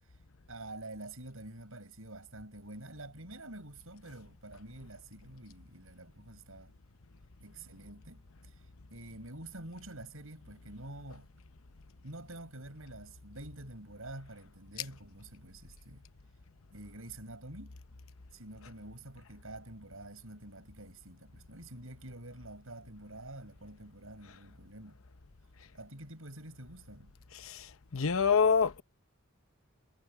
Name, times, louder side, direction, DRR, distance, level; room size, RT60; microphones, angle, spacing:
voice 1, 0.5-6.7 7.4-8.5 8.9-11.3 12.0-16.1 16.7-17.8 18.3-25.0 25.7-27.1, right 1 dB, 70° right, 7.9 m, -48 dB
voice 2, 27.9-28.8, left 6 dB, 70° left, 0.9 m, -26 dB
head